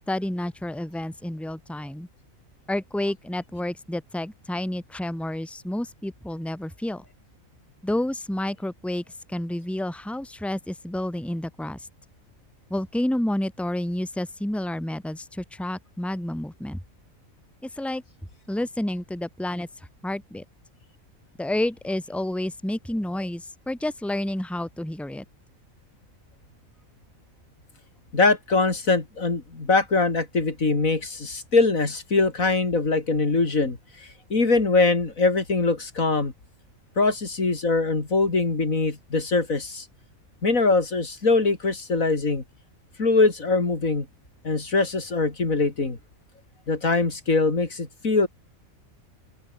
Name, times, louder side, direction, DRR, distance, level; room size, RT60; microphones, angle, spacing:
voice 1, 0.1-2.1 2.7-7.0 7.8-11.9 12.7-16.8 17.6-18.0 18.5-19.7 20.0-20.4 21.4-25.2, left 1 dB, ahead, 2.2 m, -30 dB
voice 2, 28.1-33.8 34.3-36.3 37.0-39.9 40.4-42.4 43.0-44.1 44.4-46.0 46.7-48.3, left 3 dB, 80° left, 3.8 m, -22 dB
open air
omnidirectional pair, 1.4 m